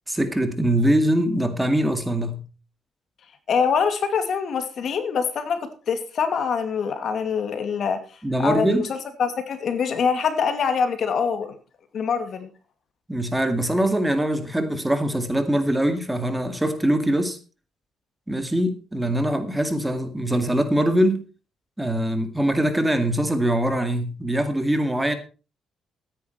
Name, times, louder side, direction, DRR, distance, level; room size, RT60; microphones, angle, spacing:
voice 1, 0.1-2.4 8.2-8.9 13.1-17.4 18.3-21.3 21.8-25.1, right 1 dB, 10° right, 2.2 m, -23 dB
voice 2, 3.5-8.0 8.4-11.5 11.9-12.5, left 6 dB, 60° left, 2.4 m, -24 dB
13.5 x 10.0 x 4.5 m
cardioid pair, 90°, 0 cm